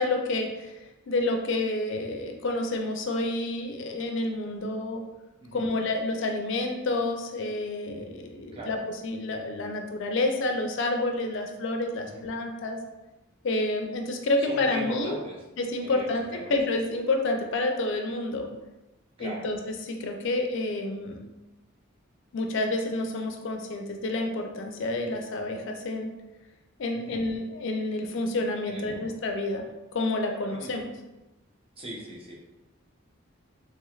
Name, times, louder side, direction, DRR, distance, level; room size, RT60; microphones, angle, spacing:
voice 1, 0.0-5.0 5.5-8.8 9.0-12.8 13.4-15.2 15.6-16.2 16.5-18.5 19.2-21.2 22.3-26.1 26.8-29.6 29.9-30.9, left 2 dB, 60° left, 3 dB, 0.4 m, -29 dB
voice 2, 14.5-15.4 15.8-16.5 19.2-19.5 26.9-27.2 28.7-29.1 30.5-30.8 31.8-32.4, right 2 dB, 25° right, -3 dB, 0.5 m, -39 dB
3.3 x 3.1 x 2.3 m, 1.0 s
head